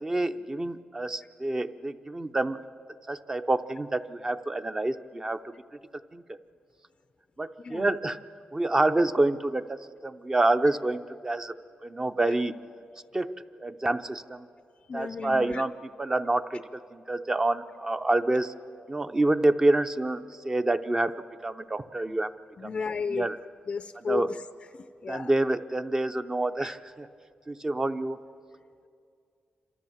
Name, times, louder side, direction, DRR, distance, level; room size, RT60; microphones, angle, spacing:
voice 1, 0.0-2.6 3.1-5.5 6.1-6.2 7.4-8.2 8.5-11.5 11.8-12.5 13.1-14.5 14.9-15.7 16.0-16.6 16.9-18.5 18.9-21.1 21.4-22.3 22.6-22.7 23.1-23.4 24.1-24.3 25.1-27.1 27.5-28.2, right 2 dB, 20° right, 10 dB, 0.6 m, -27 dB
voice 2, 14.9-15.6 20.6-20.7 22.6-23.4 23.7-24.4 24.7-25.3 26.6-26.7, left 5 dB, 40° left, 12 dB, 0.4 m, -34 dB
29.0 x 13.5 x 7.2 m, 2.4 s
wide cardioid pair, 135°, 3 cm